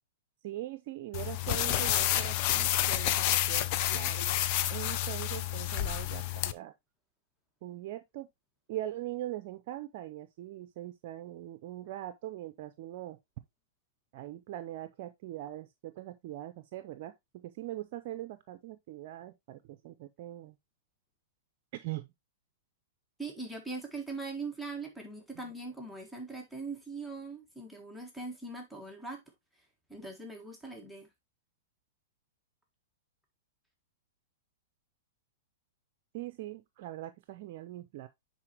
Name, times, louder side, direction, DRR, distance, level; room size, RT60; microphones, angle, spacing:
voice 1, 0.4-4.3 4.7-6.7 7.6-8.3 8.7-13.2 14.1-20.6 21.7-22.1 25.3-25.4 36.1-38.1, right 14 dB, 50° right, 0.6 m, -41 dB
sound 1, 1.1-6.5, left 13 dB, 45° left, 0.6 m, -29 dB
voice 2, 23.2-29.2 29.9-31.1, right 3 dB, ahead, 1.7 m, -41 dB
9.7 x 4.2 x 2.9 m
hypercardioid pair, 125°, 0 cm